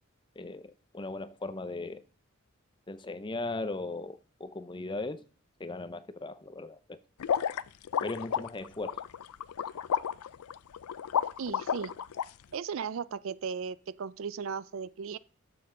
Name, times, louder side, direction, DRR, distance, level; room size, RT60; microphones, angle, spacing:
voice 1, 0.4-2.0 2.9-5.2 5.6-7.0 8.0-9.0, left 2 dB, 20° left, 0.5 m, -38 dB
sound 1, 7.2-12.2, left 8 dB, 90° left, 0.4 m, -31 dB
voice 2, 11.4-11.9 12.5-15.2, right 6 dB, 60° right, 0.4 m, -36 dB
13.0 x 6.8 x 3.7 m
head